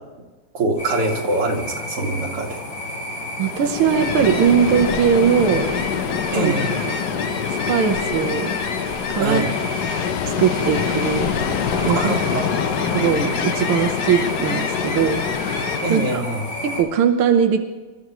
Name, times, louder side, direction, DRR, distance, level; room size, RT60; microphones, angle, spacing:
voice 1, 0.5-2.6 6.3-6.8 9.2-9.5 11.9-12.5 15.8-16.4, right 2 dB, 90° right, 0 dB, 3.0 m, -24 dB
sound 1, 0.8-16.8, left 1 dB, 80° left, 5.1 m, -31 dB
Ocean, 3.4-16.2, left 7 dB, 60° left, 1.3 m, -25 dB
voice 2, 3.4-5.7 6.3-6.5 6.8-7.0 7.7-8.5 9.1-9.4 10.2-11.3 11.8-12.2 12.9-16.2 16.6-17.6, right 7 dB, 70° right, 3 dB, 1.8 m, -20 dB
27.5 x 13.5 x 3.1 m, 1.2 s
omnidirectional pair, 2.4 m